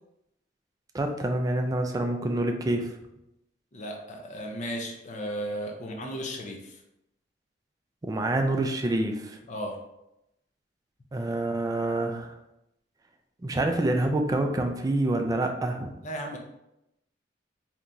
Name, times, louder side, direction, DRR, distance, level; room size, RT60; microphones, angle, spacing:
voice 1, 0.9-3.0 8.0-9.4 11.1-12.4 13.4-15.9, right 2 dB, 20° right, 4 dB, 0.3 m, -27 dB
voice 2, 3.7-6.8 9.5-9.8 16.0-16.4, equal, 45° left, 1 dB, 0.6 m, -35 dB
3.5 x 2.9 x 2.6 m, 0.86 s
head